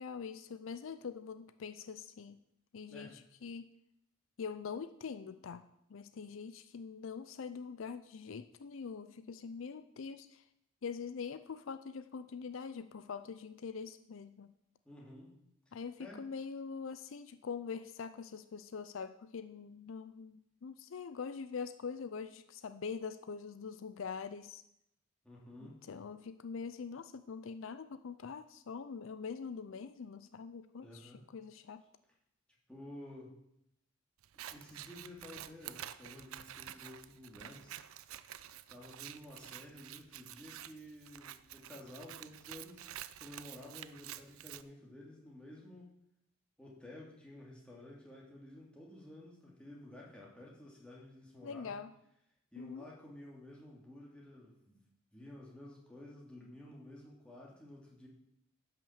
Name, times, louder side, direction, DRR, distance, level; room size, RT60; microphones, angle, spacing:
voice 1, 0.0-2.4 2.7-3.7 4.4-5.6 5.9-10.4 10.8-14.5 15.7-24.6 25.9-31.8 51.4-51.9 52.6-52.9, left 5 dB, 70° left, 12 dB, 0.5 m, -44 dB
voice 2, 14.8-15.4 16.0-16.2 25.2-25.8 30.8-31.2 32.7-33.3 34.3-37.7 38.7-45.9 46.6-51.8 52.5-54.8 55.1-58.1, left 1 dB, 5° left, -4 dB, 2.6 m, -52 dB
Scissors, 34.2-44.6, right 12 dB, 90° right, 0.5 m, -49 dB
10.5 x 5.9 x 7.1 m, 0.79 s
head